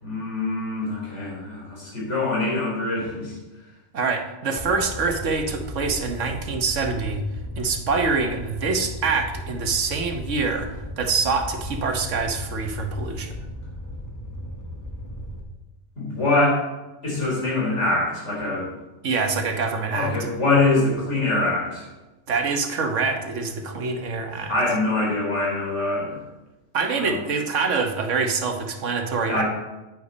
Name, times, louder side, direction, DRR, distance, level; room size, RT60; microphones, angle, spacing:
voice 1, 0.0-3.4 16.0-16.6 17.0-18.7 19.9-21.9 24.5-26.1 26.9-27.2 29.3-29.4, left 2 dB, 75° left, -5 dB, 4.2 m, -24 dB
voice 2, 3.9-7.2 7.6-13.3 19.0-20.2 22.3-24.5 26.7-29.4, right 4 dB, 85° right, 5 dB, 1.4 m, -25 dB
Fire, 4.6-15.4, left 1 dB, 15° left, 1.1 m, -36 dB
10.5 x 9.6 x 4.1 m, 1.1 s
omnidirectional pair, 1.2 m